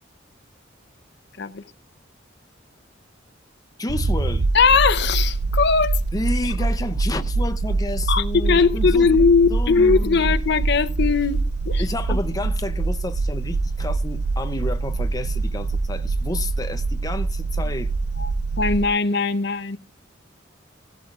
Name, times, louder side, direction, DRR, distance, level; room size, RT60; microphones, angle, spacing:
voice 1, 3.8-4.5 6.1-9.1 9.5-10.2 11.8-17.9, left 2 dB, 20° left, 0.7 m, -30 dB
sound 1, 3.9-18.9, right 3 dB, 70° right, 0.6 m, -24 dB
voice 2, 4.5-6.0 8.1-11.4 11.7-11.8 12.1-12.2 18.2-18.3 18.6-19.8, left 5 dB, 60° left, 0.8 m, -19 dB
17.0 x 12.0 x 2.5 m
head